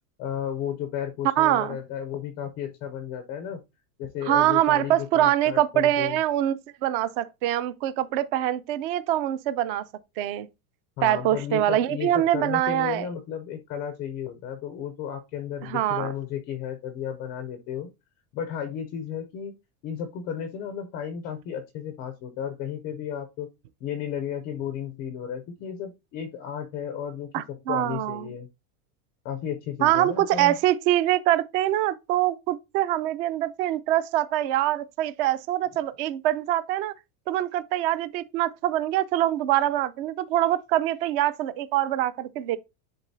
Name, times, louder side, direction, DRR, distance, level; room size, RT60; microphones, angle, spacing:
voice 1, 0.2-3.6 4.0-6.2 11.0-17.9 18.3-19.5 19.8-23.5 23.8-28.5 29.2-30.5, left 9 dB, 25° left, 0.4 m, -33 dB
voice 2, 1.4-1.8 4.3-6.6 6.8-9.9 10.2-10.5 11.0-13.1 15.6-16.1 27.3-28.3 29.8-36.9 37.3-42.6, right 13 dB, 40° right, 0.4 m, -24 dB
10.5 x 3.7 x 2.6 m
supercardioid pair, 175°, 44 cm